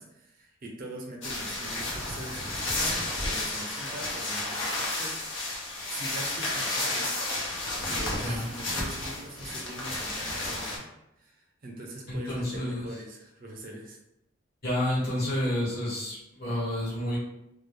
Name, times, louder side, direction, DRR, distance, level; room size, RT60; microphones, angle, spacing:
voice 1, 0.0-5.3 5.9-7.2 7.8-10.9 11.2-14.0, right 1 dB, 45° right, 1 dB, 0.5 m, -42 dB
sound 1, 1.2-10.8, left 2 dB, 80° left, 0.7 m, -32 dB
voice 2, 12.1-12.8 14.6-17.2, left 1 dB, 50° left, -6 dB, 1.1 m, -29 dB
2.3 x 2.1 x 3.2 m, 0.85 s
head